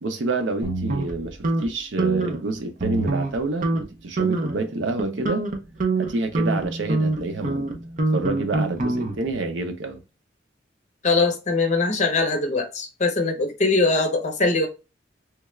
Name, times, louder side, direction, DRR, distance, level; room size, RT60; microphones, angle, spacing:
voice 1, 0.0-5.4 6.0-7.8 8.1-10.0, right 2 dB, 85° right, 0.6 m, -28 dB
sound 1, 0.6-1.7 2.0-2.4 2.8-3.4 3.6-3.8 4.2-4.6 5.0-9.3, right 2 dB, 45° right, 0.7 m, -25 dB
voice 2, 11.0-14.7, left 3 dB, 40° left, 0.8 m, -22 dB
3.3 x 2.4 x 3.1 m
head